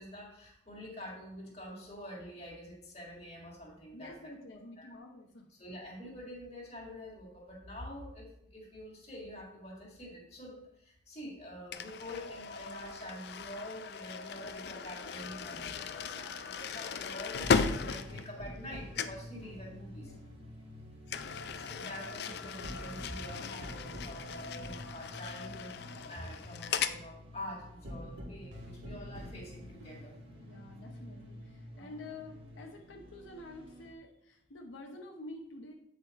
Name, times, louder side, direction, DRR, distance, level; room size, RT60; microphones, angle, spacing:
voice 1, 0.0-4.1 4.8-4.9 5.5-20.1 21.5-30.2 31.7-31.9, equal, 35° left, -2 dB, 2.1 m, -46 dB
voice 2, 3.9-5.5 20.0-20.3 30.4-35.7, left 2 dB, 85° left, 1 dB, 0.9 m, -49 dB
sound 1, 11.7-18.7 18.9-19.3 21.1-27.0, left 5 dB, 60° left, 0.4 m, -37 dB
sound 2, 15.1-33.9, right 1 dB, 30° right, 1.1 m, -57 dB
sound 3, 17.4-32.6, equal, 70° right, 1.6 m, -48 dB
8.4 x 5.0 x 4.1 m, 0.78 s
head